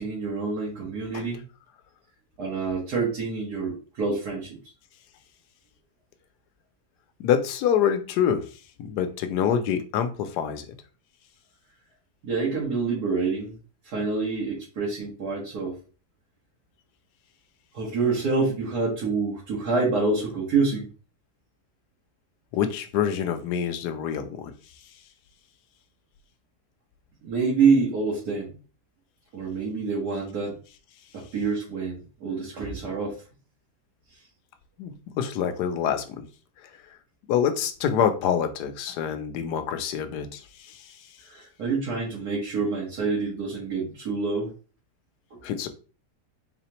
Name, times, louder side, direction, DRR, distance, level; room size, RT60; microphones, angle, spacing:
voice 1, 0.0-1.4 2.4-4.6 12.2-13.5 13.8-15.8 17.7-20.9 27.2-28.6 29.3-30.6 31.1-33.2 41.2-44.5 45.3-45.4, right 4 dB, 70° right, -5 dB, 1.8 m, -27 dB
voice 2, 7.2-10.7 22.5-24.5 34.8-36.3 36.6-36.7 37.3-41.1 45.4-45.7, left 8 dB, 85° left, 8 dB, 1.2 m, -26 dB
4.1 x 3.8 x 2.9 m, 0.37 s
omnidirectional pair, 1.7 m